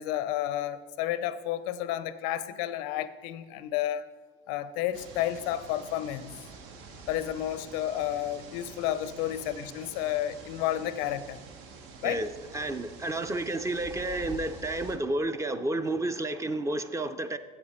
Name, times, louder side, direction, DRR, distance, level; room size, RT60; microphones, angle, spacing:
voice 1, 0.0-4.0 4.5-6.4 7.1-11.4 12.0-12.2, left 12 dB, 90° left, 14 dB, 0.5 m, -31 dB
sound 1, 4.9-15.0, right 4 dB, 75° right, 1.1 m, -47 dB
voice 2, 12.0-17.4, right 2 dB, 15° right, 10 dB, 0.4 m, -31 dB
8.9 x 8.0 x 4.4 m, 1.5 s
cardioid pair, 115°, 21 cm